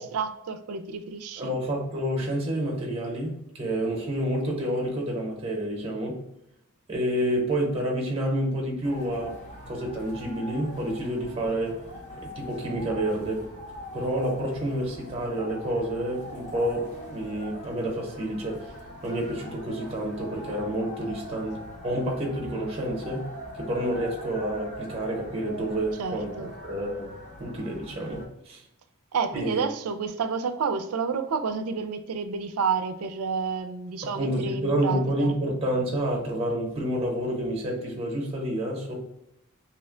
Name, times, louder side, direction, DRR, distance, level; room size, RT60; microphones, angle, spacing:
voice 1, 0.0-1.5 26.0-26.5 29.1-35.4, right 5 dB, 90° right, 0.4 m, -30 dB
voice 2, 1.4-6.2 6.9-9.4 9.7-11.8 12.2-13.5 13.9-18.7 19.0-23.3 23.6-27.1 27.4-28.6 29.3-29.6 34.0-38.9, right 1 dB, 25° right, 0.7 m, -29 dB
sound 1, 8.8-28.2, equal, 35° left, 0.7 m, -42 dB
2.8 x 2.1 x 3.7 m
head